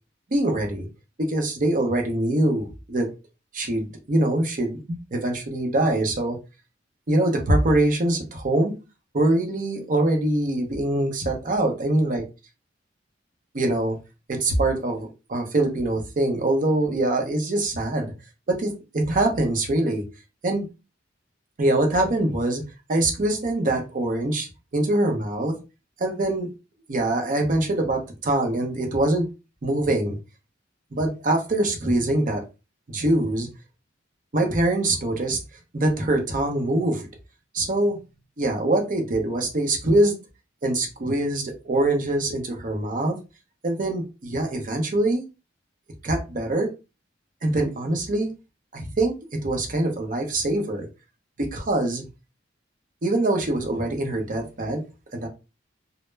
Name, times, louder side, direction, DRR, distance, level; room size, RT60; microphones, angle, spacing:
voice 1, 0.3-0.9 1.3-3.1 3.5-6.4 7.1-8.7 9.1-12.2 13.5-14.0 14.3-18.1 18.5-20.0 20.4-20.7 21.6-22.6 22.9-25.6 26.0-26.5 26.9-29.3 29.6-30.2 30.9-32.4 32.9-33.5 34.3-35.4 35.7-37.1 37.5-38.0 38.4-40.1 40.6-43.2 43.6-45.2 46.0-46.7 47.4-48.3 48.7-49.1 49.4-50.9 51.4-52.0 53.0-54.8 55.1-55.3, right 1 dB, 45° right, 0.6 m, -23 dB
2.1 x 2.0 x 3.2 m
head